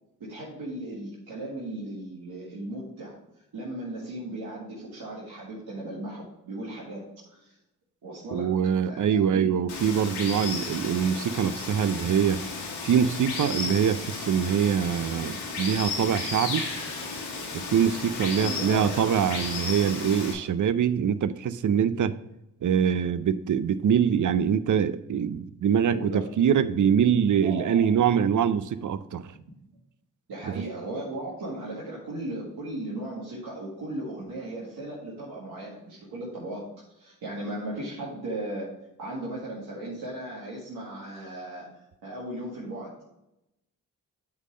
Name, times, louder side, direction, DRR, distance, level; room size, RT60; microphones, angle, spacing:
voice 1, 0.2-3.2 3.5-7.6 8.0-8.5 8.9-9.5 18.4-19.2 23.0-23.1 25.8-26.3 27.4-27.9 30.3-36.7 37.0-38.7 39.0-41.7 42.0-42.9, right 1 dB, 65° right, -7 dB, 2.0 m, -36 dB
voice 2, 8.3-12.4 12.8-16.7 17.5-22.2 22.6-29.3, right 8 dB, 50° right, 14 dB, 0.6 m, -24 dB
Water, 9.7-20.3, left 4 dB, 80° left, 1.6 m, -34 dB
8.1 x 3.8 x 5.0 m, 0.89 s
supercardioid pair, 45°, 39 cm